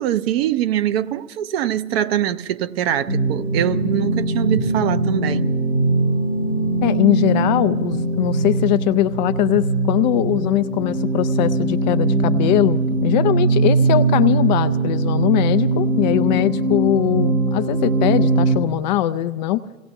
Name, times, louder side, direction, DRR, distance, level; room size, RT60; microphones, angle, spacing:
voice 1, 0.0-5.5, right 11 dB, 45° right, 0.7 m, -23 dB
sound 1, 3.1-18.6, right 2 dB, 65° right, 2.0 m, -20 dB
voice 2, 6.8-19.6, left 14 dB, 35° left, 0.4 m, -20 dB
28.5 x 17.5 x 2.7 m
figure-of-eight pair, 100°, 42 cm